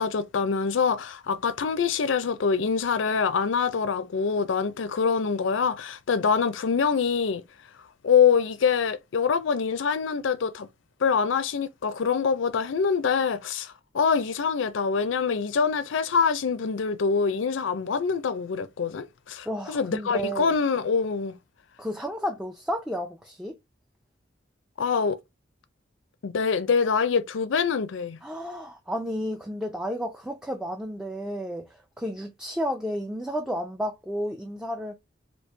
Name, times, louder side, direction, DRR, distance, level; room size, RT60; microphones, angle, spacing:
voice 1, 0.0-7.4 8.0-10.7 11.0-21.3 24.8-25.2 26.2-28.2, left 6 dB, 90° left, 0.5 m, -25 dB
voice 2, 19.5-20.5 21.8-23.6 28.2-34.9, equal, 5° right, 0.4 m, -32 dB
3.1 x 2.7 x 3.2 m
head